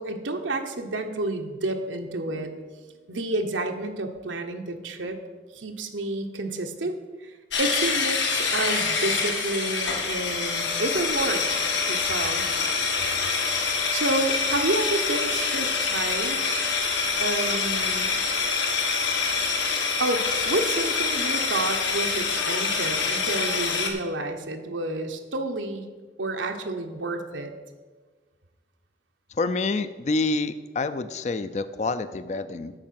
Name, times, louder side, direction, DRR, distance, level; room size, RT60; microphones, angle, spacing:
voice 1, 0.0-2.5 3.1-5.2 5.5-11.4 11.9-12.5 13.9-16.5 17.2-18.1 20.0-25.9 26.2-27.5, right 2 dB, 90° right, 4 dB, 1.1 m, -30 dB
sound 1, 7.5-23.9, left 5 dB, 75° left, 1.5 m, -26 dB
voice 2, 29.4-32.7, left 3 dB, 40° left, 12 dB, 0.4 m, -27 dB
8.8 x 6.3 x 7.6 m, 1.4 s
head